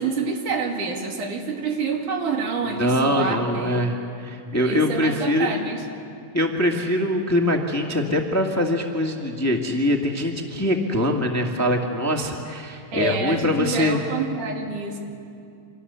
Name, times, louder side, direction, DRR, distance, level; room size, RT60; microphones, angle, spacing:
voice 1, 0.0-3.8 4.6-5.8 12.9-15.0, right 4 dB, 90° right, 2 dB, 4.0 m, -27 dB
voice 2, 2.8-4.0 4.2-5.5 6.3-14.0, left 1 dB, 5° left, 1 dB, 1.3 m, -23 dB
29.0 x 26.0 x 7.0 m, 2.5 s
omnidirectional pair, 3.4 m